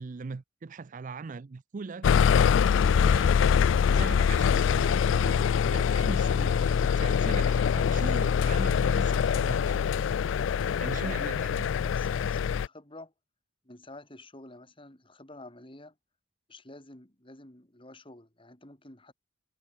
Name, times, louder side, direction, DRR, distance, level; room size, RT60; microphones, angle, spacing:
voice 1, 0.0-2.1 2.8-3.4 3.9-9.8 10.8-11.6, right 4 dB, 40° right, 0.4 m, -40 dB
sound 1, 2.0-12.7, left 7 dB, 75° left, 0.3 m, -24 dB
voice 2, 10.8-13.1 13.6-16.0 16.5-19.1, left 2 dB, 25° left, 3.4 m, -49 dB
head